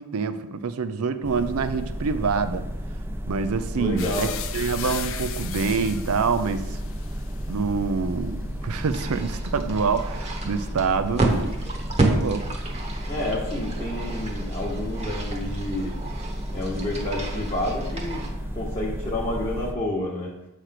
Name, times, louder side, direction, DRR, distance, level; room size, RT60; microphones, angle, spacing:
voice 1, 0.0-2.7 3.3-6.8 7.5-11.6 12.0-12.5, right 5 dB, 70° right, 0.5 m, -26 dB
sound 1, 1.2-19.7, equal, 10° right, 0.5 m, -32 dB
voice 2, 3.8-4.3 13.1-16.0 16.5-18.2 18.5-20.3, left 1 dB, 25° left, 1.0 m, -29 dB
sound 2, 4.0-11.9 12.2-13.4, left 9 dB, 60° left, 0.5 m, -39 dB
sound 3, 8.8-18.3, right 2 dB, 30° right, 1.1 m, -31 dB
7.9 x 3.2 x 5.8 m
head